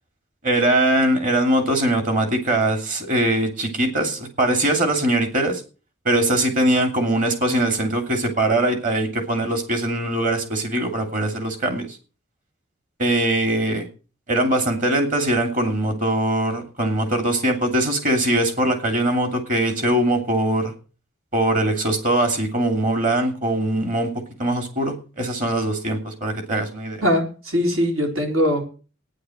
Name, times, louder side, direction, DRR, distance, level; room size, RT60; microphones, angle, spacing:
voice 1, 0.4-5.6 6.0-11.9 13.0-13.9 14.3-20.7 21.3-24.1 24.4-27.0, right 1 dB, 40° right, 5 dB, 2.9 m, -21 dB
voice 2, 27.0-28.6, equal, 80° right, 2 dB, 4.3 m, -21 dB
11.5 x 10.0 x 6.4 m, 0.36 s
head